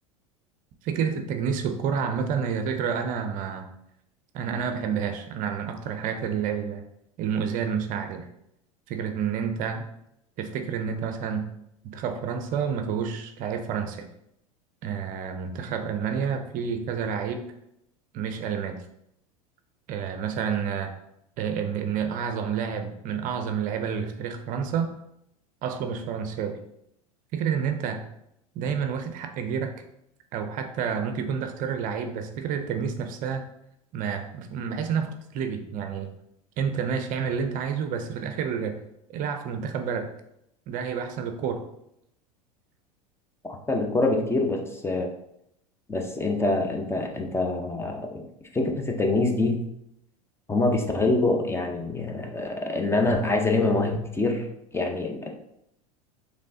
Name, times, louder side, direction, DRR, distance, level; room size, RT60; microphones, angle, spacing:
voice 1, 0.8-3.7 4.3-6.8 7.2-8.3 8.9-9.9 10.4-11.5 11.8-14.1 14.8-17.5 18.1-18.8 19.9-20.9 21.4-24.9 25.6-26.6 27.3-28.0 28.6-29.8 30.3-33.4 33.9-36.1 36.6-38.8 39.1-40.1 40.7-41.6, right 7 dB, 45° right, 7 dB, 0.6 m, -29 dB
voice 2, 43.4-45.1 45.9-48.2 48.5-49.6 50.5-54.5 54.7-55.3, left 2 dB, 15° left, 2 dB, 0.8 m, -25 dB
5.2 x 3.2 x 2.8 m, 0.79 s
hypercardioid pair, 85°, 19 cm